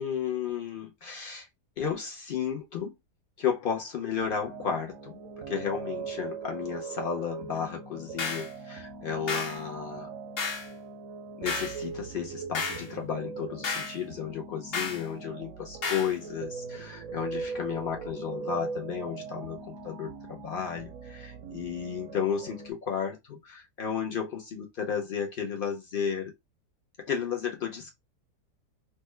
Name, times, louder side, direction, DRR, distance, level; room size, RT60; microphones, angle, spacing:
voice 1, 0.0-1.5 1.8-2.9 3.4-5.2 5.5-10.1 11.4-26.3 27.0-27.9, left 7 dB, 80° left, 0.5 m, -33 dB
sound 1, 4.1-22.7, right 5 dB, 70° right, 0.8 m, -40 dB
sound 2, 8.2-8.5 9.3-9.6 10.4-10.7 11.4-11.8 12.5-12.9 13.6-14.0 14.7-15.0 15.8-16.1, left 4 dB, 50° left, 0.8 m, -32 dB
3.3 x 2.1 x 3.1 m
omnidirectional pair, 1.8 m